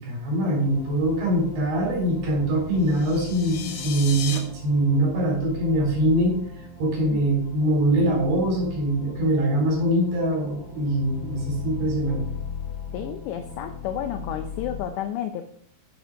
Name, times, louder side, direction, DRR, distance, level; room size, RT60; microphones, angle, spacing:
voice 1, 0.0-6.4 6.8-12.2, right 1 dB, 60° right, 0 dB, 6.2 m, -23 dB
sound 1, 0.6-14.9, left 5 dB, 40° left, 3.2 m, -38 dB
sound 2, 2.8-4.4, left 7 dB, 65° left, 2.4 m, -35 dB
voice 2, 12.9-15.5, left 10 dB, 90° left, 8 dB, 2.4 m, -31 dB
9.6 x 9.2 x 5.1 m, 0.63 s
omnidirectional pair, 5.8 m